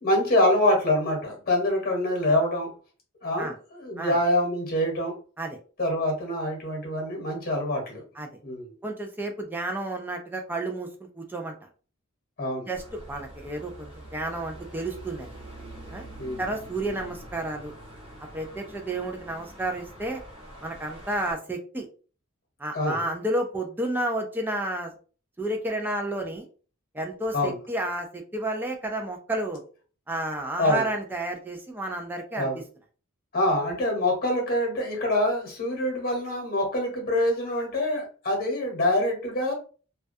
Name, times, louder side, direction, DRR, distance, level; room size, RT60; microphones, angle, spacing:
voice 1, 0.0-2.7 3.2-5.1 5.8-8.0 8.4-8.7 12.4-12.7 16.2-16.4 22.7-23.0 27.3-27.6 30.6-30.8 32.4-32.6 33.3-39.5, left 1 dB, 45° left, 0 dB, 1.0 m, -25 dB
voice 2, 8.8-11.5 12.7-15.3 15.9-16.1 16.4-17.7 18.3-20.2 20.6-21.9 22.6-24.9 25.4-26.5 26.9-29.6 30.1-32.6, right 1 dB, 10° right, 3 dB, 0.3 m, -31 dB
sound 1, 12.7-21.3, right 1 dB, 25° right, 0.8 m, -45 dB
2.2 x 2.2 x 2.5 m, 0.38 s
head